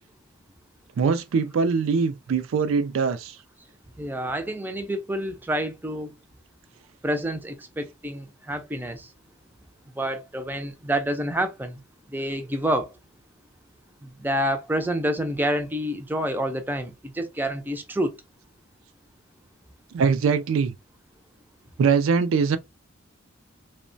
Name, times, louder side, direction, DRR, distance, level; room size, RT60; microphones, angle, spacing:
voice 1, 1.0-3.4 19.9-20.7 21.8-22.6, right 5 dB, 75° right, 0.4 m, -22 dB
voice 2, 4.0-6.1 7.0-9.1 10.0-11.8 12.1-12.9 14.0-18.2, equal, 10° right, 0.4 m, -28 dB
3.0 x 2.1 x 2.5 m
head